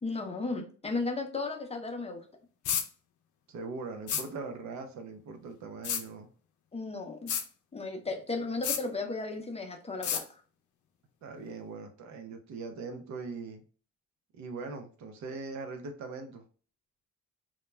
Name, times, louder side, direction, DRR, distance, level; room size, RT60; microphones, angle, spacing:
voice 1, 0.0-2.2 6.7-7.3 7.7-10.4, left 3 dB, 20° left, 3 dB, 0.5 m, -35 dB
sound 1, 2.7-2.9 4.1-4.3 5.8-6.0 7.3-7.5 8.6-8.8 10.0-10.2, left 8 dB, 75° left, 0.5 m, -30 dB
voice 2, 3.5-6.3 8.0-8.1 11.2-13.6 14.3-16.4, right 4 dB, 70° right, 5 dB, 0.6 m, -41 dB
2.2 x 2.1 x 3.2 m, 0.39 s
cardioid pair, 90°, 30 cm